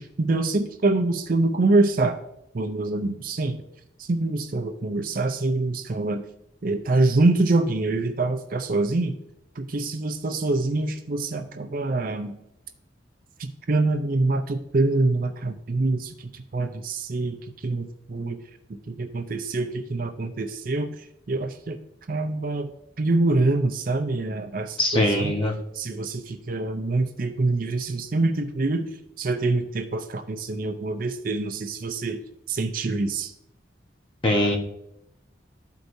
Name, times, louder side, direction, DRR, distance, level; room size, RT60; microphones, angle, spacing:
voice 1, 0.0-2.2 2.5-3.6 4.1-6.2 6.6-9.2 9.6-12.3 13.4-17.4 17.6-18.4 18.7-21.0 21.3-21.8 22.1-22.7 23.0-25.3 25.8-28.9 29.2-32.2 32.5-33.3, right 2 dB, 45° right, 7 dB, 0.5 m, -25 dB
voice 2, 24.8-25.5 34.2-34.6, left 1 dB, 25° left, 1 dB, 1.0 m, -21 dB
13.0 x 4.6 x 2.7 m, 0.80 s
head